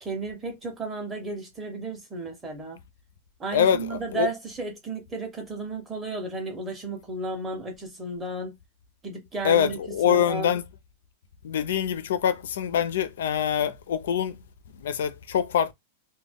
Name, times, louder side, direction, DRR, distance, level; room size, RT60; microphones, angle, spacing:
voice 1, 0.0-2.8 3.4-8.5 9.0-9.8 10.1-10.5, right 3 dB, 10° right, 0.5 m, -33 dB
voice 2, 3.5-4.3 9.4-10.7 11.4-14.4 14.8-15.7, left 8 dB, 75° left, 0.4 m, -24 dB
2.1 x 2.1 x 3.3 m
supercardioid pair, 180°, 0 cm